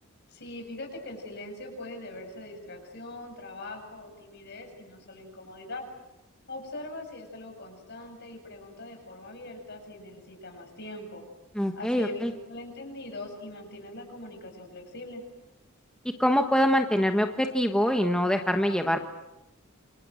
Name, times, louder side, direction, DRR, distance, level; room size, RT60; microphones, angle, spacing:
voice 1, 0.3-5.9 6.5-11.2 11.8-12.2 12.5-15.2, left 2 dB, 55° left, 4 dB, 7.4 m, -42 dB
voice 2, 11.6-12.3 16.2-19.0, equal, 5° left, 4 dB, 1.3 m, -24 dB
28.0 x 26.5 x 7.7 m, 0.96 s
head